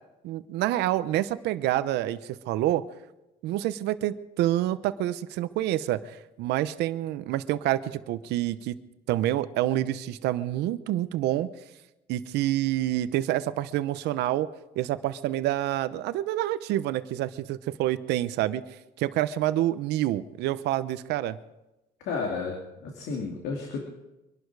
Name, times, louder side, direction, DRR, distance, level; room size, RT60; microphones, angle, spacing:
voice 1, 0.2-2.8 3.4-8.7 9.1-11.5 12.1-14.5 14.8-18.6 19.0-21.4, right 14 dB, 85° right, 14 dB, 0.8 m, -27 dB
voice 2, 22.0-23.8, left 4 dB, 85° left, 1 dB, 2.8 m, -32 dB
24.0 x 11.5 x 4.8 m, 0.97 s
cardioid pair, 110°, 17 cm